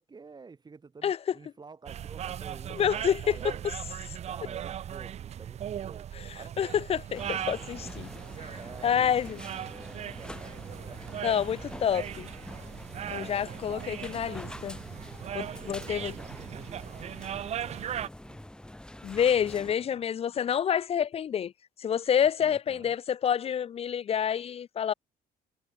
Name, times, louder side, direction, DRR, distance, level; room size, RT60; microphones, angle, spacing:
voice 1, 0.0-3.6 4.2-6.7 8.5-11.2 13.0-13.5 15.6-18.4 22.4-22.9, right 4 dB, 25° right, 2.8 m, -50 dB
sound 1, 1.9-18.1, right 10 dB, 40° right, 0.5 m, -38 dB
voice 2, 2.7-3.4 6.2-8.1 8.4-8.6 8.8-9.4 11.2-12.3 13.1-14.8 15.3-16.1 19.0-21.5 21.8-24.9, left 8 dB, 35° left, 0.5 m, -28 dB
sound 2, 7.1-19.7, left 1 dB, 5° left, 3.8 m, -45 dB
cardioid pair, 110°, 17 cm